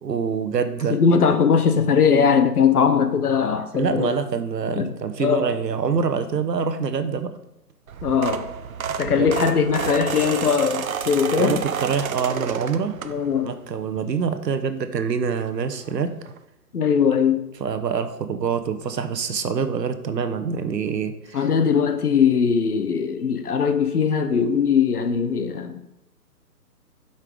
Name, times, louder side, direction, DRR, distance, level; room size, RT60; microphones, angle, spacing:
voice 1, 0.0-1.0 3.7-7.3 9.0-9.3 11.3-13.0 13.4-16.1 17.6-21.5, right 6 dB, 80° right, 9 dB, 1.0 m, -25 dB
voice 2, 0.9-4.1 4.8-5.5 8.0-8.5 9.0-11.6 13.0-13.5 16.7-17.4 21.3-25.9, left 6 dB, 65° left, 9 dB, 1.0 m, -20 dB
sound 1, 7.9-13.5 14.0-14.2 15.5-15.6 15.8-15.9 16.3-16.4, right 7 dB, 60° right, 0.5 m, -30 dB
8.2 x 5.6 x 3.7 m, 0.86 s
hypercardioid pair, 170°, 49 cm